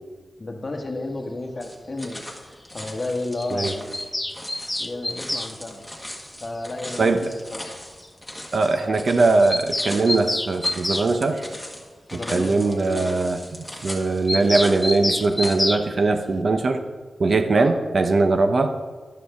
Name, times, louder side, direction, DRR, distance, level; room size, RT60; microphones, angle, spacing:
voice 1, 0.4-3.9 4.8-5.8 6.4-7.7 12.1-12.8 17.5-17.8, left 2 dB, 40° left, 1 dB, 1.1 m, -32 dB
sound 1, 1.6-15.6, left 1 dB, ahead, 1.7 m, -39 dB
Bird vocalization bird call bird song, 3.4-5.5 7.0-7.1 7.3-7.4 7.6-7.7 8.0-8.1 8.3-8.4 8.7-8.8 9.1-11.1 14.3-15.8, left 1 dB, 20° left, 0.5 m, -27 dB
voice 2, 7.0-7.3 8.5-11.4 12.1-16.8 17.2-18.8, right 3 dB, 60° right, 7 dB, 0.7 m, -21 dB
11.5 x 6.3 x 3.5 m, 1.4 s
cardioid pair, 55°, 0 cm